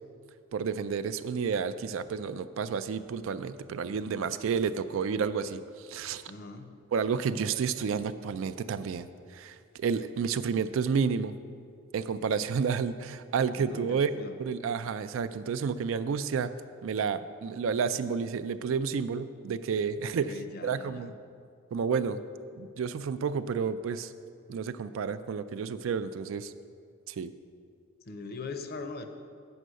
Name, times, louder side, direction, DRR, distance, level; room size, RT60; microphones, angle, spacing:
voice 1, 0.5-5.6 5.9-6.2 6.9-9.1 9.3-11.3 11.9-14.1 14.4-16.5 16.8-20.3 20.6-21.1 21.7-22.2 22.5-24.1 24.5-26.5 27.1-27.3, right 6 dB, 70° right, 13 dB, 0.3 m, -30 dB
voice 2, 6.3-6.7 13.6-14.4 20.0-21.1 28.1-29.1, left 3 dB, 45° left, 7 dB, 0.6 m, -41 dB
7.9 x 5.4 x 6.3 m, 2.2 s
head